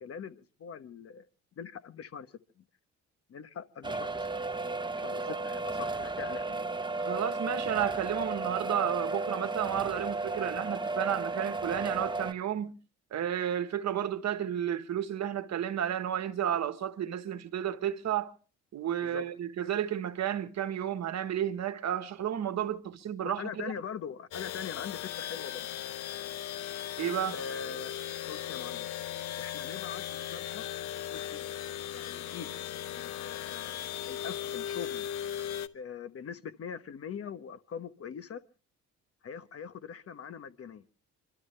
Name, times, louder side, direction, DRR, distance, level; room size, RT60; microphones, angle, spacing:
voice 1, 0.0-1.3 1.6-2.6 3.3-4.3 5.0-6.6 19.0-19.3 23.2-25.7 27.3-28.0 28.3-28.9 29.4-30.6 31.1-31.5 31.9-32.5 32.9-35.1 35.7-38.4 39.2-40.8, left 7 dB, 50° left, 1.0 m, -42 dB
sound 1, 3.8-12.3, right 3 dB, 15° right, 1.0 m, -34 dB
voice 2, 7.0-12.7 13.1-18.3 18.7-23.7 27.0-27.4, right 10 dB, 60° right, 1.3 m, -32 dB
sound 2, 24.3-35.7, left 10 dB, 85° left, 0.8 m, -38 dB
27.0 x 12.5 x 3.3 m
cardioid pair, 90°, 30 cm